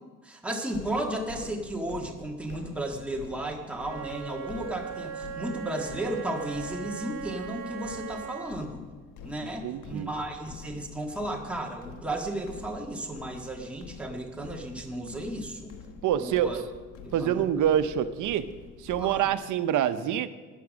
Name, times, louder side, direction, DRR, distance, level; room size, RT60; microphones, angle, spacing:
voice 1, 0.2-8.9 9.2-15.8 16.1-16.6 17.0-17.5 19.0-19.3, right 1 dB, 5° right, 0 dB, 1.7 m, -34 dB
sound 1, 0.7-19.3, left 5 dB, 85° left, 1.2 m, -47 dB
Wind instrument woodwind instrument, 3.7-8.6, right 7 dB, 65° right, 1.5 m, -39 dB
voice 2, 9.4-10.1 16.0-16.6 17.1-18.5 18.8-20.3, right 10 dB, 80° right, 12 dB, 0.8 m, -26 dB
13.0 x 10.0 x 6.3 m, 1.3 s
cardioid pair, 90°, 30 cm